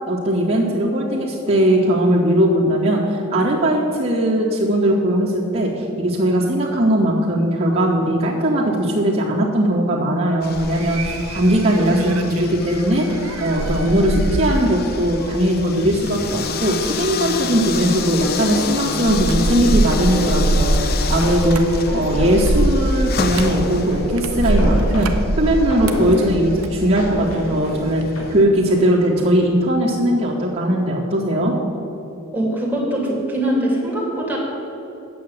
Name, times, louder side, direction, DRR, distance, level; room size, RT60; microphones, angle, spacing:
voice 1, 0.1-21.6 21.9-25.1 25.4-31.6, right 1 dB, 30° right, -10 dB, 2.1 m, -19 dB
sound 1, 10.4-28.4, left 5 dB, 50° left, 0.6 m, -30 dB
sound 2, 10.6-27.3 27.6-28.1, right 1 dB, 85° right, 0.9 m, -24 dB
sound 3, 18.4-19.0 19.5-22.7 23.2-26.6 27.0-28.8 29.2-29.4, equal, 90° left, 2.5 m, -30 dB
voice 2, 32.3-34.4, right 1 dB, 10° right, -4 dB, 2.6 m, -22 dB
9.2 x 6.9 x 8.7 m, 2.9 s
head